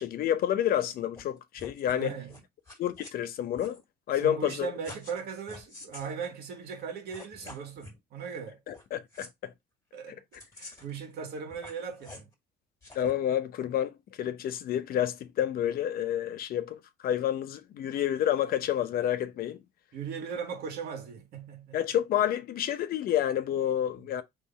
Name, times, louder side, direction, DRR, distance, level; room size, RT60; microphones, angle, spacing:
voice 1, 0.0-2.1 2.8-3.8 4.1-4.7 8.7-9.5 12.9-19.6 21.7-24.2, left 11 dB, 60° left, 0.7 m, -29 dB
sound 1, 1.2-1.3 1.5-2.0 2.3-3.1 3.5-3.8 4.8-5.2 5.5-6.1 6.8-6.9 7.1-8.0 8.7-8.8 9.1-9.3 10.3-11.0 11.5-12.3 12.8-13.1, left 2 dB, 20° left, 1.8 m, -48 dB
voice 2, 1.9-2.4 4.2-8.6 9.9-10.2 10.6-12.3 19.9-21.8, right 6 dB, 70° right, 1.7 m, -38 dB
3.7 x 3.2 x 4.1 m
cardioid pair, 110°, 17 cm